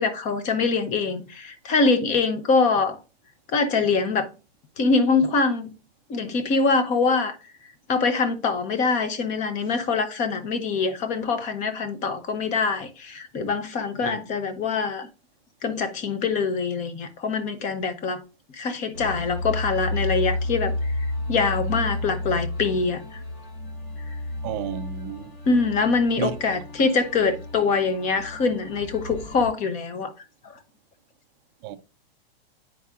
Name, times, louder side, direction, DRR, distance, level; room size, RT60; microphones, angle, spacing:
voice 1, 0.0-3.0 3.5-4.3 4.8-5.7 6.1-7.4 7.9-15.1 15.6-18.2 18.5-20.9 21.3-23.2 25.5-30.1, left 4 dB, 25° left, 0.8 m, -24 dB
sound 1, 18.9-29.5, left 2 dB, 50° left, 3.0 m, -31 dB
voice 2, 24.4-25.3 26.2-26.3 26.8-26.9 31.6-31.8, right 8 dB, 25° right, 0.4 m, -32 dB
9.4 x 4.7 x 2.5 m
supercardioid pair, 150°, 31 cm